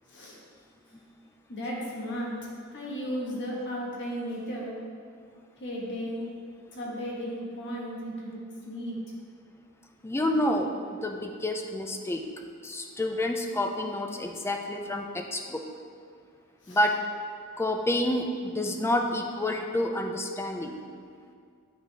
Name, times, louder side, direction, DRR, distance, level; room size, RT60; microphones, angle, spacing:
voice 1, 0.1-0.4 1.5-2.3 2.7-4.8 5.6-6.3 6.7-9.0 16.6-16.8, equal, 55° left, -4 dB, 1.3 m, -35 dB
voice 2, 10.0-12.2 12.6-15.6 16.7-17.0 17.6-20.8, left 1 dB, 10° left, 4 dB, 0.4 m, -29 dB
9.5 x 3.9 x 3.4 m, 2.2 s
head